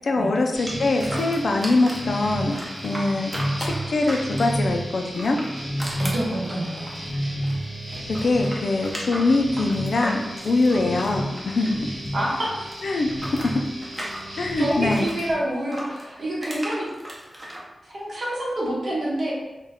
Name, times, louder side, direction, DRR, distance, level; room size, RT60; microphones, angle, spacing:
voice 1, 0.0-2.6 2.8-3.3 3.6-5.4 8.2-11.8 12.8-13.1 13.4-13.6 14.4-15.0, left 2 dB, 70° left, 3 dB, 0.3 m, -23 dB
sound 1, 0.5-15.3, equal, 45° right, 1.0 m, -32 dB
sound 2, 0.7-2.1 2.5-4.6 5.1-7.6 7.9-12.1 12.3-15.3 15.7-17.6, equal, 20° right, 0.7 m, -36 dB
voice 2, 6.0-6.9 12.1-12.6 14.6-16.9 17.8-19.3, right 1 dB, 65° right, -5 dB, 0.9 m, -27 dB
2.2 x 2.1 x 3.4 m, 1.0 s
wide cardioid pair, 75°, 0 cm